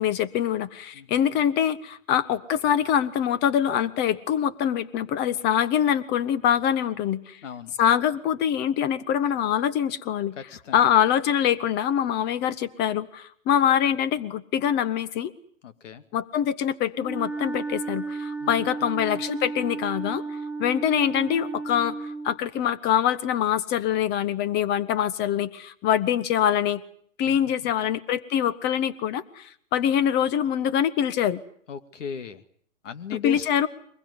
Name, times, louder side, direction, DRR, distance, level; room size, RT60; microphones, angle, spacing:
voice 1, 0.0-7.4 7.8-10.3 10.7-15.3 16.1-20.2 20.6-26.8 27.2-31.4 33.2-33.7, left 9 dB, 25° left, 17 dB, 1.4 m, -24 dB
voice 2, 7.4-7.7 10.4-10.9 15.6-16.0 18.4-18.9 19.1-19.2 27.2-27.7 31.7-32.4 32.8-33.5, left 8 dB, 65° left, 12 dB, 2.4 m, -37 dB
Wind instrument woodwind instrument, 17.0-22.4, right 3 dB, ahead, 5.6 m, -33 dB
23.5 x 21.5 x 9.7 m, 0.63 s
hypercardioid pair, 125°, 40 cm